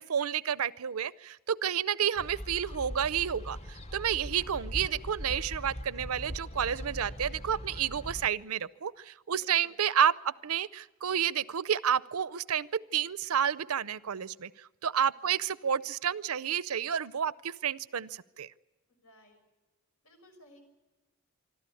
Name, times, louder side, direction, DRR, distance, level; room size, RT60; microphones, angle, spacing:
voice 1, 0.0-18.5, right 8 dB, 90° right, 19 dB, 0.6 m, -30 dB
sound 1, 2.2-8.3, equal, 30° left, 0.8 m, -41 dB
voice 2, 4.3-4.6 9.3-9.8 15.2-15.4 18.9-19.4 20.0-20.6, left 1 dB, 90° left, 5 dB, 5.6 m, -59 dB
25.5 x 13.0 x 8.5 m, 1.2 s
head